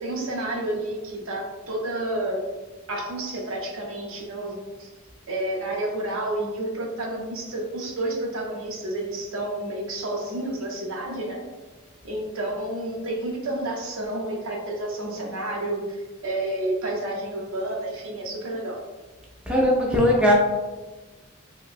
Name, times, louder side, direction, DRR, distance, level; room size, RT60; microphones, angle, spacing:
voice 1, 0.0-2.4 2.9-4.9 5.3-11.4 12.0-16.0 16.2-18.8, right 1 dB, 70° right, -1 dB, 0.6 m, -30 dB
voice 2, 19.5-20.3, left 1 dB, 5° right, -3 dB, 0.3 m, -19 dB
2.9 x 2.7 x 2.4 m, 1.2 s
head